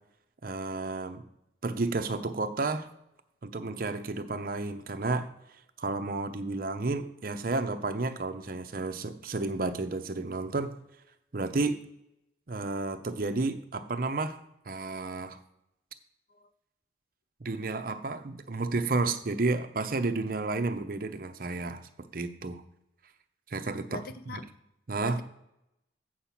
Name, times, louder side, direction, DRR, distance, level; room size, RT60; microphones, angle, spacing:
voice 1, 0.4-1.2 1.6-2.9 3.4-5.3 5.8-10.7 11.3-11.8 12.5-14.4 14.7-15.4 17.4-21.8 22.1-22.6 23.5-24.0 24.3-24.4 24.9-25.2, right 3 dB, 50° right, 8 dB, 0.7 m, -31 dB
voice 2, 23.9-24.5 25.0-25.2, left 1 dB, 55° left, 11 dB, 0.6 m, -41 dB
8.7 x 4.7 x 5.8 m, 0.83 s
head